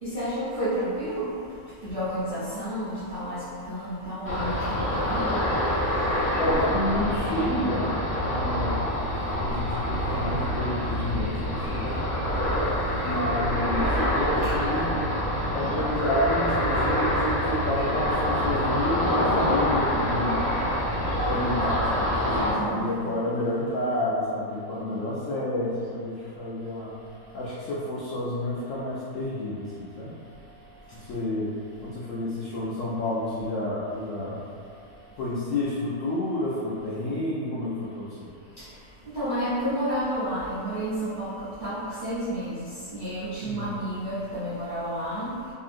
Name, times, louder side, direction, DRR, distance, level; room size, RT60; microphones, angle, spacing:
voice 1, 0.0-1.3 1.8-5.4 8.9-9.0 10.1-10.2 14.4-14.5 22.6-23.0 30.9-31.0 38.6-38.8 39.1-45.3, equal, 65° right, -14 dB, 0.4 m, -31 dB
Ocean, 4.3-22.5, equal, 10° left, 0.9 m, -26 dB
voice 2, 6.4-8.7 9.2-11.9 13.0-15.0 15.5-20.4 21.3-26.9 27.3-30.1 30.9-31.5 31.8-34.4 35.2-38.3 43.4-43.8, left 1 dB, 80° left, -8 dB, 0.7 m, -30 dB
2.7 x 2.6 x 2.5 m, 2.4 s
omnidirectional pair, 1.9 m